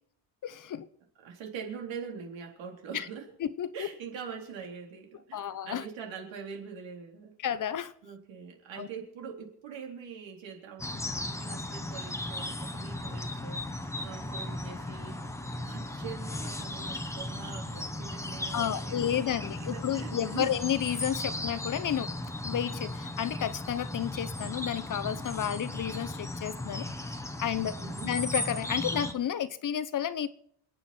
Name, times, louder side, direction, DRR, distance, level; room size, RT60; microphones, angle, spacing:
voice 1, 0.4-0.9 2.9-3.1 3.4-3.9 5.3-5.9 7.4-7.9 8.8-8.9 18.5-22.1 22.4-26.9 27.4-27.7 28.0-30.3, left 10 dB, 45° left, 14 dB, 0.9 m, -31 dB
voice 2, 1.2-3.3 3.7-7.3 8.0-15.2 15.5-20.6 21.2-21.3 27.8-28.1, right 6 dB, 85° right, 1 dB, 3.9 m, -43 dB
sound 1, 10.8-29.1, left 1 dB, 5° left, 1.0 m, -36 dB
28.0 x 9.5 x 4.4 m, 0.64 s
cardioid pair, 160°, 45 cm